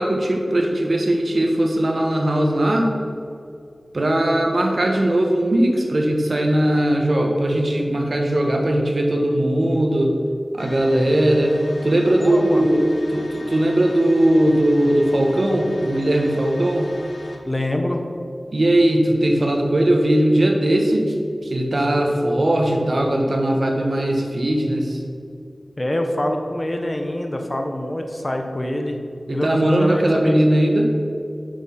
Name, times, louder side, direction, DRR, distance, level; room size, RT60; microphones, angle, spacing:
voice 1, 0.0-2.9 3.9-10.2 10.5-16.9 18.5-21.1 21.4-25.0 29.3-30.9, right 1 dB, 70° right, 2 dB, 1.3 m, -19 dB
sound 1, 10.6-17.4, left 1 dB, 90° left, 1.2 m, -39 dB
voice 2, 12.2-12.7 17.4-18.0 25.8-29.0 29.3-30.4, left 1 dB, 30° left, 4 dB, 1.0 m, -25 dB
8.1 x 6.1 x 5.8 m, 2.5 s
wide cardioid pair, 50°, 0 cm